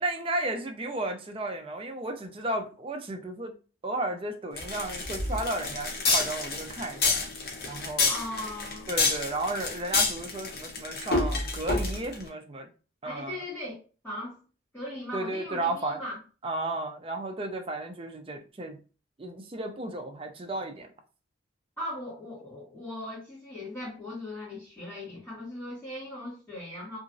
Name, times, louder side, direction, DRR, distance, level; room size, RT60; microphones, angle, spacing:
voice 1, 0.0-3.5 3.8-7.2 7.7-8.1 8.9-12.7 13.0-13.4 15.1-16.0 16.4-18.8 19.2-20.9, right 2 dB, 30° right, 4 dB, 0.4 m, -33 dB
sound 1, 4.6-12.2, left 3 dB, 55° left, 0.8 m, -28 dB
voice 2, 8.1-8.9 13.0-14.4 14.7-16.2 21.8-27.0, left 1 dB, 10° left, -12 dB, 1.4 m, -39 dB
2.9 x 2.5 x 2.5 m, 0.35 s
head